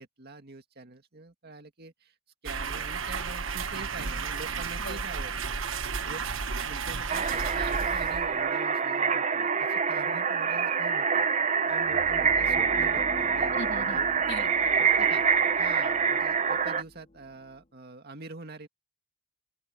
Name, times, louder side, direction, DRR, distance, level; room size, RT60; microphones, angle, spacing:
voice 1, 0.0-2.1 2.4-5.6 6.0-6.3 6.6-11.3 11.7-14.1 14.8-15.3 15.6-18.7, right 3 dB, 50° right, 2.1 m, -44 dB
sound 1, 2.5-8.5, right 5 dB, 75° right, 1.3 m, -33 dB
sound 2, 7.1-16.8, right 6 dB, 35° right, 0.8 m, -26 dB
sound 3, 11.7-17.6, left 1 dB, 30° left, 1.4 m, -44 dB
voice 2, 13.5-14.8 15.8-16.0, left 3 dB, 60° left, 3.0 m, -41 dB
open air
head